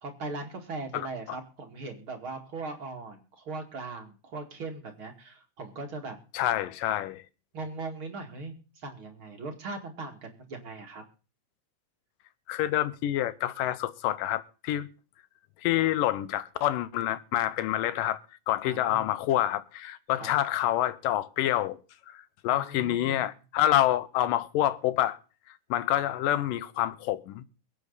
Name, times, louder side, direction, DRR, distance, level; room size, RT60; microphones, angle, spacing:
voice 1, 0.0-6.2 7.5-11.0 18.7-19.1 20.2-20.3 22.5-23.2, right 3 dB, 40° right, 2.6 m, -39 dB
voice 2, 6.3-7.2 12.5-14.9 15.6-18.2 18.5-21.8 22.1-25.2 25.7-27.4, left 13 dB, 75° left, 2.4 m, -27 dB
22.5 x 8.6 x 4.0 m
omnidirectional pair, 4.2 m